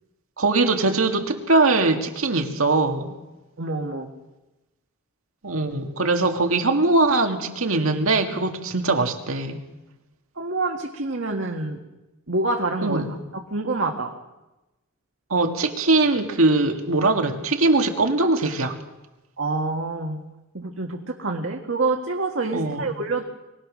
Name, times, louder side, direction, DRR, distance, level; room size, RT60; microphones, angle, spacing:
voice 1, 0.4-3.1 5.4-9.6 12.8-13.1 15.3-18.8 22.5-23.0, right 3 dB, 80° right, 4 dB, 2.0 m, -21 dB
voice 2, 3.6-4.1 10.4-11.8 12.3-13.1 13.3-14.1 19.4-20.2 20.5-23.2, right 3 dB, 65° right, 2 dB, 1.8 m, -27 dB
23.0 x 18.0 x 6.4 m, 1.0 s
head